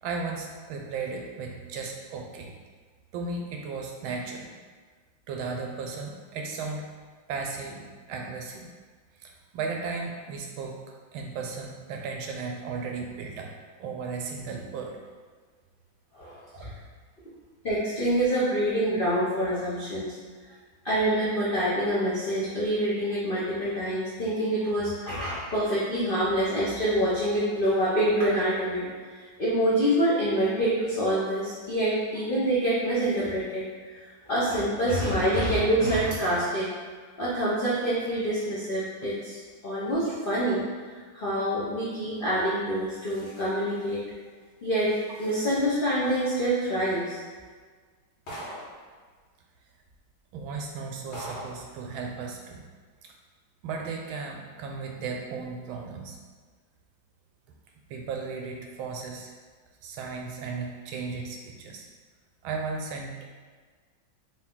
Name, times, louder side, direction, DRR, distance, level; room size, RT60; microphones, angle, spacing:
voice 1, 0.0-2.6 3.1-4.6 5.3-6.9 7.3-8.7 9.2-10.8 11.1-13.5 13.8-15.0 16.5-16.8 23.0-23.1 24.6-24.7 50.3-52.6 53.0-53.1 53.6-56.2 57.9-59.3 59.8-61.9 62.4-63.3, right 4 dB, 85° right, 1 dB, 1.4 m, -35 dB
voice 2, 16.1-16.7 17.6-20.2 20.8-28.9 29.1-36.7 37.2-40.6 40.9-44.0 44.6-47.2, right 1 dB, 70° left, -9 dB, 0.5 m, -26 dB
sound 1, 48.3-48.8 49.9-50.0 50.5-50.6 51.1-51.7, right 1 dB, 90° left, 1.9 m, -39 dB
3.6 x 2.8 x 3.6 m, 1.5 s
omnidirectional pair, 2.2 m